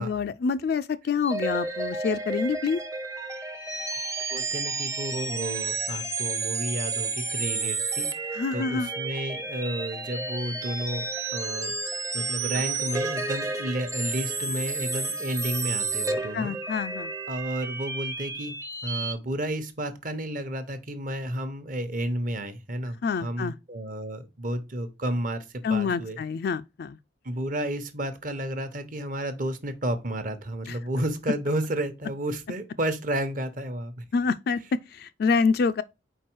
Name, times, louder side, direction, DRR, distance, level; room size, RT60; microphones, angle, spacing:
voice 1, 0.0-2.8 8.3-8.9 16.3-17.1 23.0-23.5 25.6-27.0 30.7-30.8 34.1-35.8, left 5 dB, 55° left, 0.3 m, -27 dB
sound 1, 1.2-19.1, right 3 dB, 15° right, 0.6 m, -31 dB
voice 2, 4.3-11.7 12.1-16.5 17.3-18.5 18.8-26.2 27.2-34.0, right 1 dB, 45° right, 0.9 m, -32 dB
4.6 x 4.5 x 4.6 m
head